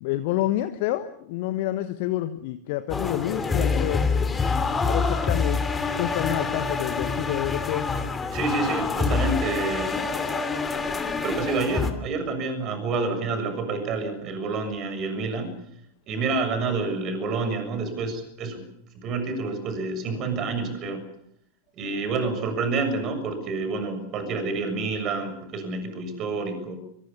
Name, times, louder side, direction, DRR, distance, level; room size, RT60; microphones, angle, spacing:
voice 1, 0.0-4.0 4.8-7.9, left 14 dB, 50° left, 10 dB, 1.3 m, -28 dB
sound 1, 2.9-11.9, left 4 dB, 15° left, 3.0 m, -26 dB
voice 2, 8.3-10.0 11.2-15.6 16.1-18.6 18.9-21.0 21.8-26.8, right 3 dB, 35° right, 9 dB, 7.0 m, -28 dB
24.5 x 24.5 x 7.1 m, 0.71 s
figure-of-eight pair, 90°, 0 cm